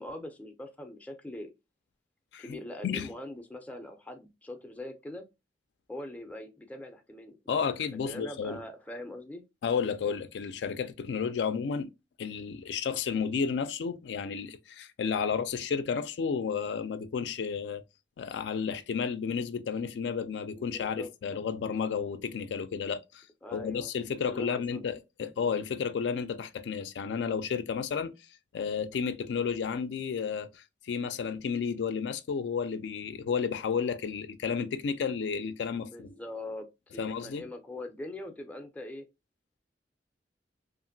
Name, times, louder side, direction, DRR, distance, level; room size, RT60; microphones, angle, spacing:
voice 1, 0.0-1.5 2.4-5.2 5.9-7.6 8.1-9.4 20.6-21.1 23.4-23.9 24.1-24.9 35.8-39.1, left 1 dB, 10° left, 0.4 m, -42 dB
voice 2, 7.5-8.6 9.6-11.9 12.2-17.8 18.2-23.2 23.5-28.1 28.5-36.1 37.0-37.4, left 6 dB, 75° left, 0.3 m, -32 dB
2.9 x 2.5 x 2.6 m
head